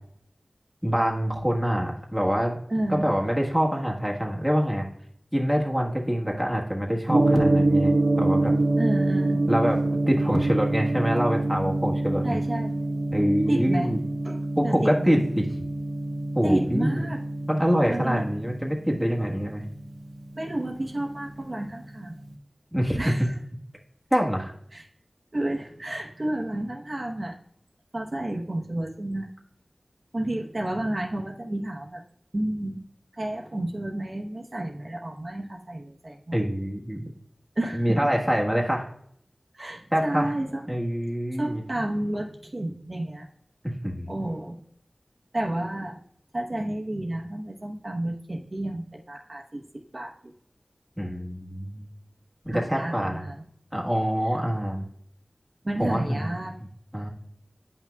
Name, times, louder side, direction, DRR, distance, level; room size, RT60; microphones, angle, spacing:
voice 1, 0.8-2.6 2.9-4.9 5.3-8.5 9.5-9.8 10.1-12.4 13.1-14.0 14.6-15.5 16.3-17.1 17.5-19.6 22.7-23.0 24.1-24.5 36.3-37.0 37.7-38.9 39.9-40.3 40.7-41.6 43.8-44.1 51.0-51.9 52.4-53.3 53.7-54.9 55.8-56.4 56.9-57.1, equal, 5° right, -1 dB, 1.3 m, -25 dB
voice 2, 2.7-3.1 8.8-9.5 12.2-12.8 13.5-13.9 14.2-15.2 16.4-17.2 17.9-18.2 20.3-22.2 23.0-23.3 24.7-24.8 25.3-27.4 27.9-29.3 30.1-32.0 32.3-32.8 33.2-36.4 37.6-38.0 39.5-40.8 41.4-43.3 44.1-44.6 45.3-46.0 46.3-49.7 49.9-50.3 52.5-53.4 55.6-56.6, right 1 dB, 50° right, 0 dB, 1.0 m, -31 dB
Gong, 7.1-21.3, right 2 dB, 85° right, 1.0 m, -26 dB
9.6 x 5.8 x 2.3 m, 0.68 s
wide cardioid pair, 65°, 0 cm